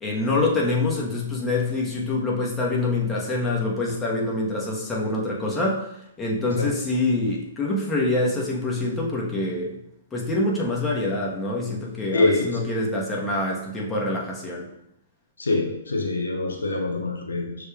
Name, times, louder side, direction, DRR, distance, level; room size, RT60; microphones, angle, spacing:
voice 1, 0.0-5.9 6.2-9.8 10.1-14.7, left 2 dB, 15° left, -3 dB, 1.1 m, -25 dB
voice 2, 12.1-12.6 15.4-17.6, left 2 dB, 85° left, 3 dB, 0.7 m, -24 dB
6.3 x 3.4 x 2.4 m, 0.79 s
hypercardioid pair, 120°, 0 cm